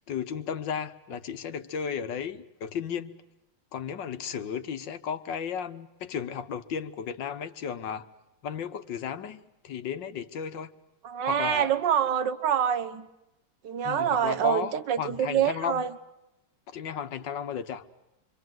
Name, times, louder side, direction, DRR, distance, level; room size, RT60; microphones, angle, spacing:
voice 1, 0.0-3.1 3.7-8.1 8.4-10.7 11.3-11.7 13.8-15.8 16.7-17.9, left 7 dB, 80° left, 1.9 m, -34 dB
voice 2, 11.0-13.1 13.6-15.9, right 9 dB, 75° right, 1.9 m, -26 dB
27.0 x 24.5 x 7.8 m
omnidirectional pair, 1.9 m